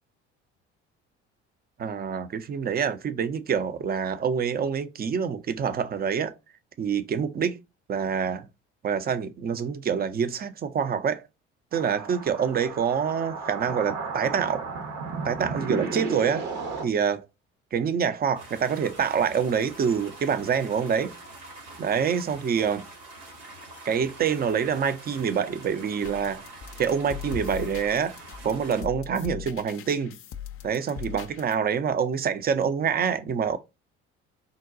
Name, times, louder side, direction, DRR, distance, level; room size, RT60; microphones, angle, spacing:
voice 1, 1.8-6.4 6.8-7.6 7.9-8.5 8.8-11.3 11.7-14.6 15.2-16.5 16.8-17.3 17.7-21.1 21.8-22.9 23.8-26.4 26.8-28.2 28.4-30.2 30.6-33.6, right 7 dB, 30° right, 0.5 m, -26 dB
sound 1, 11.7-16.8, right 4 dB, 60° right, 0.9 m, -33 dB
sound 2, 18.4-28.8, right 2 dB, 80° right, 1.6 m, -45 dB
sound 3, 26.0-31.5, left 8 dB, 40° left, 0.5 m, -40 dB
3.7 x 2.2 x 2.5 m
hypercardioid pair, 55°, 34 cm